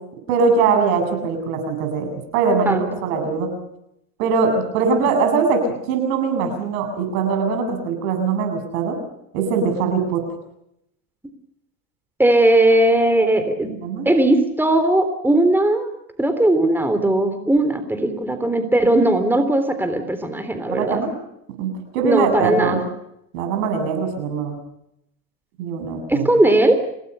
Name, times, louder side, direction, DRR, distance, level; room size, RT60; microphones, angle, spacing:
voice 1, 0.3-3.5 4.2-9.0 9.3-10.2 13.8-14.1 20.7-21.1 21.6-22.8 23.3-24.5 25.6-26.2, right 5 dB, 70° right, 5 dB, 7.8 m, -21 dB
voice 2, 2.7-3.1 4.9-5.1 12.2-13.7 14.1-15.9 16.2-21.0 22.0-22.8 26.1-26.8, right 1 dB, 5° right, 8 dB, 3.5 m, -18 dB
27.0 x 18.5 x 6.9 m, 0.80 s
hypercardioid pair, 85°, 42 cm